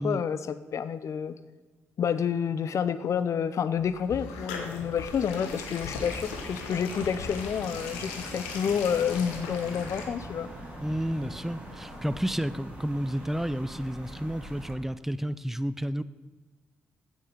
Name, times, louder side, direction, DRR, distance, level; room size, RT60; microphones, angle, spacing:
voice 1, 0.0-1.4 2.0-10.5, left 7 dB, 55° left, 14 dB, 0.6 m, -29 dB
sound 1, 3.7-10.0, left 4 dB, 85° left, 1.2 m, -39 dB
sound 2, 6.0-14.8, right 1 dB, 20° right, 3.6 m, -43 dB
voice 2, 10.8-16.0, equal, 5° right, 15 dB, 0.6 m, -31 dB
8.7 x 8.1 x 6.7 m, 1.2 s
hypercardioid pair, 40°, 6 cm